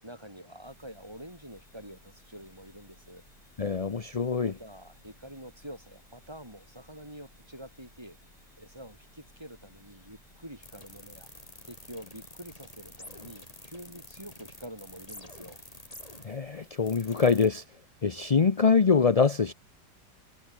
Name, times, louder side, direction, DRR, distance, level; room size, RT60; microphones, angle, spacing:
voice 1, 0.0-3.2 4.4-8.2 8.6-11.3 11.6-15.6, equal, 15° right, 7.5 m, -47 dB
sound 1, 0.6-17.5, left 1 dB, 20° left, 5.4 m, -52 dB
voice 2, 3.6-4.6 16.2-17.6 18.0-19.5, left 5 dB, 35° left, 0.5 m, -24 dB
omnidirectional pair, 1.8 m